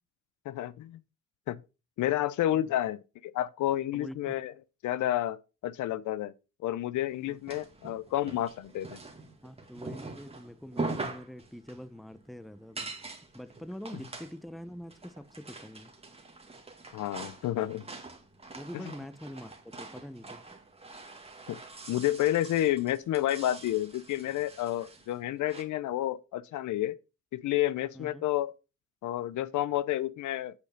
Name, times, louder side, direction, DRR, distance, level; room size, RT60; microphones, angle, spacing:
voice 1, 0.5-1.0 1.5-1.6 2.0-4.5 4.8-5.4 5.6-6.3 6.6-9.0 16.9-17.8 21.5-21.6 21.9-27.0 27.3-28.5 29.0-30.5, left 13 dB, 75° left, 0.6 m, -30 dB
voice 2, 3.9-4.4 7.3-7.4 9.4-12.9 13.3-15.9 18.6-20.4 27.9-28.2, equal, ahead, 0.7 m, -44 dB
sound 1, 7.1-25.6, right 3 dB, 20° right, 2.0 m, -44 dB
8.3 x 5.0 x 5.3 m
cardioid pair, 90°, 30 cm